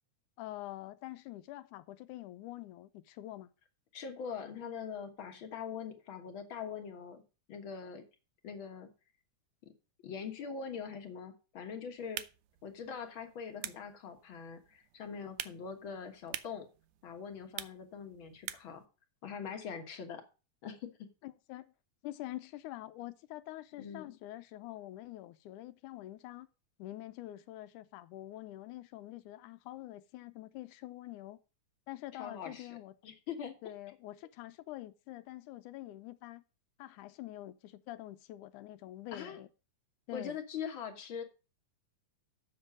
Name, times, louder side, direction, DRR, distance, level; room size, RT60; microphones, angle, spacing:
voice 1, 0.4-3.5 21.2-21.7 22.0-26.5 26.8-31.4 31.9-32.9 33.6-36.4 36.8-39.5 40.1-40.4, left 15 dB, 80° left, 2.1 m, -46 dB
voice 2, 3.9-7.2 7.5-8.0 8.4-8.9 10.0-12.2 12.6-16.7 17.0-18.8 19.2-20.2 20.6-21.1 23.8-24.1 32.1-32.7 33.0-33.5 39.1-39.4 40.1-41.2, left 6 dB, 50° left, 1.7 m, -42 dB
sound 1, 12.0-18.9, right 14 dB, 80° right, 2.0 m, -47 dB
7.6 x 6.6 x 7.3 m
omnidirectional pair, 3.6 m